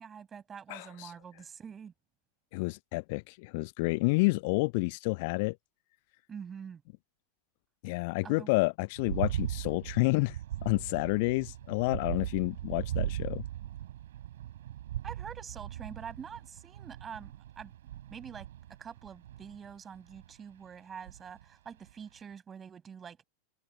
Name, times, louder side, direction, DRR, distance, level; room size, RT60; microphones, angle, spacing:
voice 1, 0.0-1.9 6.3-6.8 8.2-8.5 15.0-17.7 18.1-18.5 18.8-23.2, right 7 dB, 20° right, 7.4 m, -45 dB
voice 2, 0.7-1.1 2.5-5.6 7.8-13.4, left 27 dB, 50° left, 0.6 m, -29 dB
sound 1, 9.0-20.3 21.1-21.4 21.9-22.0, right 12 dB, 60° right, 5.7 m, -39 dB
figure-of-eight pair, 90°, 0 cm